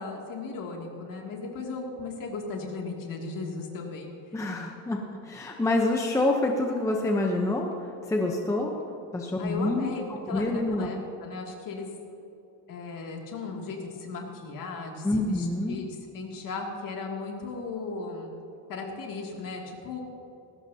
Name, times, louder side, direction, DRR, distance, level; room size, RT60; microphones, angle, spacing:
voice 1, 0.0-4.1 9.4-11.9 12.7-18.3 18.7-20.0, left 3 dB, 45° left, 0 dB, 2.6 m, -36 dB
voice 2, 4.3-7.7 8.1-8.7 9.1-9.9 10.3-10.9 15.0-15.8, left 2 dB, 5° left, 1 dB, 0.8 m, -27 dB
20.0 x 16.5 x 2.8 m, 2.9 s
cardioid pair, 155°, 45 cm